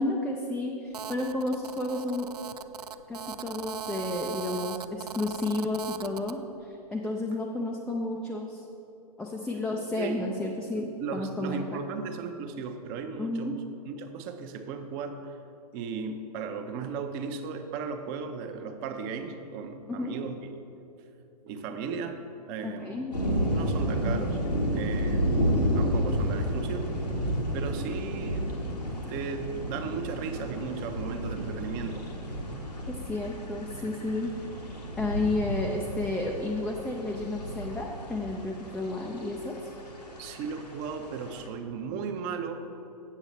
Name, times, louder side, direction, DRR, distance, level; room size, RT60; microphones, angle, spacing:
voice 1, 0.0-2.3 3.1-8.6 9.2-11.8 13.2-13.6 20.0-20.1 22.6-23.1 32.9-34.3 35.0-39.6, left 2 dB, 5° left, -1 dB, 0.3 m, -32 dB
Telephone, 0.9-6.4, right 7 dB, 75° right, 0.4 m, -39 dB
voice 2, 10.7-13.5 13.9-15.4 15.7-20.4 21.4-22.2 22.5-23.1 23.5-25.3 25.7-26.9 27.5-28.7 29.1-32.1 40.2-42.8, right 5 dB, 35° right, 6 dB, 0.7 m, -36 dB
sound 1, 23.1-41.5, equal, 90° left, 1.5 m, -31 dB
8.2 x 7.1 x 4.1 m, 2.9 s
figure-of-eight pair, 115°, 20 cm